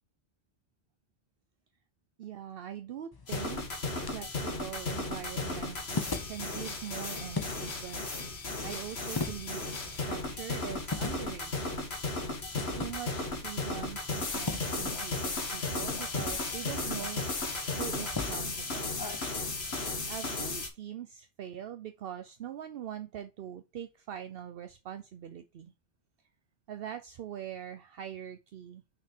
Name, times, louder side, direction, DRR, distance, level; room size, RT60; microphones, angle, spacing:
voice 1, 2.2-3.6 4.1-8.0 8.3-11.8 12.8-17.3 17.8-19.0 20.1-25.7 26.7-28.8, right 10 dB, 70° right, 0.8 m, -43 dB
sound 1, 3.1-20.0, left 3 dB, 25° left, 0.6 m, -43 dB
sound 2, 3.3-20.7, left 3 dB, 85° left, 1.7 m, -35 dB
5.9 x 4.3 x 4.4 m
omnidirectional pair, 1.0 m